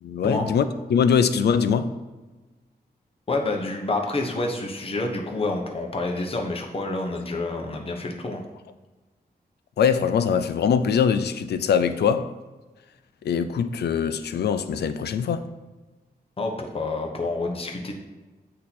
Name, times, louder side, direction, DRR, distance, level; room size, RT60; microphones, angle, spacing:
voice 1, 0.0-0.6 0.9-1.9 9.8-12.3 13.2-15.4, left 7 dB, 85° left, 11 dB, 0.4 m, -22 dB
voice 2, 3.3-8.4 16.4-17.9, left 2 dB, 35° left, 2 dB, 0.9 m, -28 dB
8.4 x 2.8 x 4.1 m, 1.2 s
wide cardioid pair, 105°, 17 cm